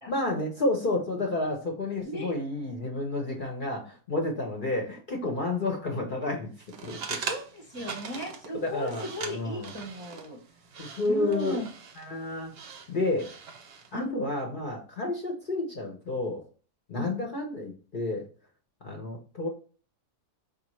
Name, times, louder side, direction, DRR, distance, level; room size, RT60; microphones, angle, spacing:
voice 1, 0.1-6.5 6.8-7.2 8.5-9.7 10.8-11.6 12.0-12.5 12.9-13.3 13.9-16.4 16.9-18.2 18.8-19.5, left 2 dB, 45° left, 1 dB, 0.7 m, -30 dB
sound 1, 6.6-13.9, right 6 dB, 60° right, 0.7 m, -41 dB
voice 2, 7.3-10.4 11.0-11.7 13.9-14.3 16.9-17.1, equal, 25° right, -2 dB, 0.6 m, -36 dB
5.2 x 2.5 x 3.0 m, 0.39 s
omnidirectional pair, 1.5 m